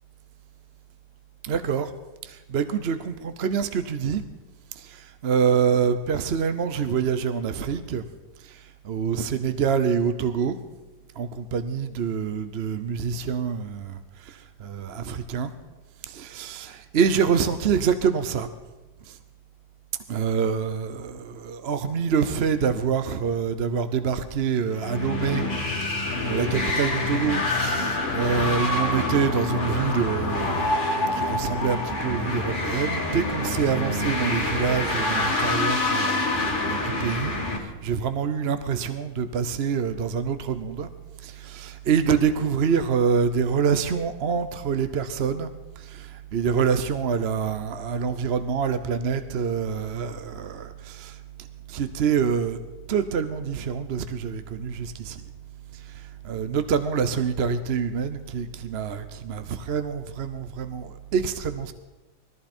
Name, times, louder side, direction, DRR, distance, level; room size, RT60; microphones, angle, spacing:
voice 1, 1.4-1.9 2.2-4.2 4.8-8.0 8.4-10.6 11.2-15.5 16.1-18.5 19.1-19.2 20.1-25.4 25.8-40.9 41.2-45.5 45.8-51.2 51.7-52.6 52.9-55.2 55.9-61.7, right 6 dB, 50° right, 11 dB, 0.8 m, -26 dB
sound 1, 24.7-37.6, left 2 dB, 30° left, 2.3 m, -26 dB
21.0 x 14.0 x 4.4 m, 1.1 s
omnidirectional pair, 1.9 m